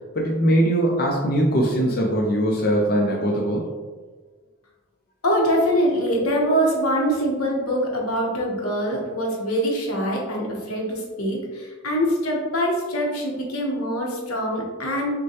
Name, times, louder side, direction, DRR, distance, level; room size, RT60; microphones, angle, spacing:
voice 1, 0.1-3.7, right 1 dB, 45° left, -1 dB, 0.5 m, -21 dB
voice 2, 5.2-15.1, equal, 85° left, -1 dB, 1.0 m, -24 dB
6.2 x 2.2 x 2.8 m, 1.4 s
head